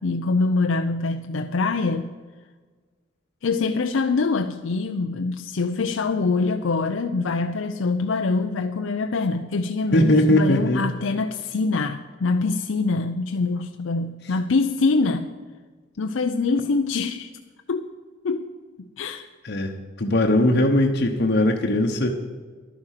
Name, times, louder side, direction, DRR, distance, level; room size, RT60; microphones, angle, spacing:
voice 1, 0.0-2.1 3.4-15.3 16.0-17.3 17.7-17.9 18.2-18.5 19.0-19.3 20.5-20.6, left 3 dB, 80° left, 6 dB, 0.5 m, -24 dB
voice 2, 9.9-10.8 19.4-22.1, left 1 dB, 55° left, 1 dB, 1.0 m, -20 dB
11.0 x 9.8 x 6.5 m, 1.4 s
head